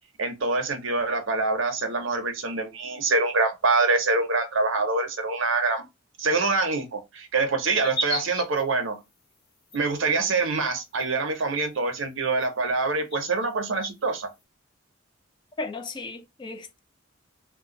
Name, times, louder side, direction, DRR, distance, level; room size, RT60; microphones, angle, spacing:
voice 1, 0.2-5.9 6.2-9.0 9.7-14.3, right 3 dB, 70° right, 0.7 m, -25 dB
sound 1, 7.8-8.6 9.7-9.8 11.0-11.1 11.3-11.4 12.4-12.5 13.1-13.2 13.8-13.9, left 1 dB, 55° left, 1.1 m, -31 dB
voice 2, 15.6-16.8, left 3 dB, 25° left, 0.3 m, -35 dB
2.4 x 2.2 x 3.8 m
head